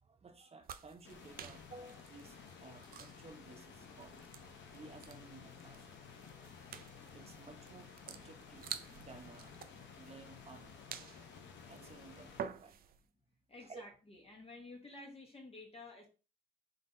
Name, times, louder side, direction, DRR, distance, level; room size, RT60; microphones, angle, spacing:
voice 1, 0.0-4.3 4.7-6.2 7.1-8.7 9.0-9.6 9.9-10.8 11.1-12.8 13.6-13.9, right 3 dB, 30° right, 0.8 m, -56 dB
sound 1, 0.6-13.0, right 8 dB, 50° right, 0.4 m, -51 dB
sound 2, 1.0-12.4, left 6 dB, 65° left, 0.9 m, -54 dB
voice 2, 13.5-16.1, left 2 dB, 30° left, 1.4 m, -52 dB
3.8 x 3.5 x 2.6 m
cardioid pair, 90°, 20 cm